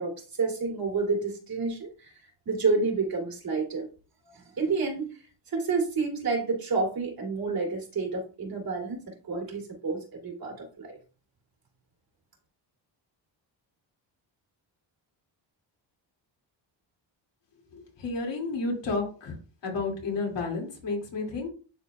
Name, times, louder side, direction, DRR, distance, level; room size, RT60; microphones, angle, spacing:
voice 1, 0.0-2.1 2.5-3.9 4.3-5.2 5.5-11.0, right 4 dB, 50° right, 0 dB, 2.8 m, -29 dB
voice 2, 17.7-19.4 19.6-21.5, left 3 dB, 70° left, 0 dB, 2.6 m, -31 dB
11.0 x 4.0 x 2.4 m, 0.37 s
cardioid pair, 100°, 46 cm